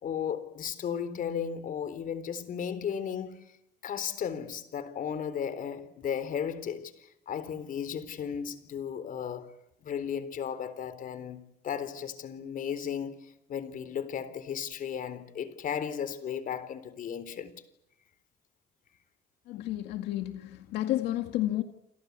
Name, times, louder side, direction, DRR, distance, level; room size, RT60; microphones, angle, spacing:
voice 1, 0.0-3.4 3.8-6.9 7.3-9.5 9.8-17.5, left 8 dB, 55° left, 3.9 m, -35 dB
voice 2, 19.5-21.6, left 14 dB, 85° left, 2.2 m, -31 dB
29.0 x 22.5 x 8.4 m
cardioid pair, 110°, 17 cm